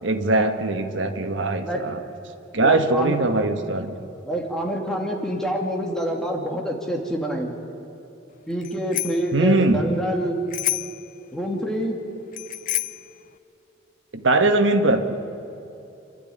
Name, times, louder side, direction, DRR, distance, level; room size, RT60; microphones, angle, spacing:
voice 1, 0.0-2.0 2.5-4.0 9.3-9.8 14.1-15.1, right 2 dB, 75° right, 7 dB, 1.5 m, -21 dB
voice 2, 2.6-3.2 4.2-7.5 8.5-10.4 11.3-12.0, equal, 5° left, 0 dB, 2.4 m, -26 dB
Bicycle bell, 8.6-9.3 10.5-11.1 12.3-13.1, left 15 dB, 45° left, 0.6 m, -28 dB
27.0 x 12.5 x 10.0 m, 2.9 s
head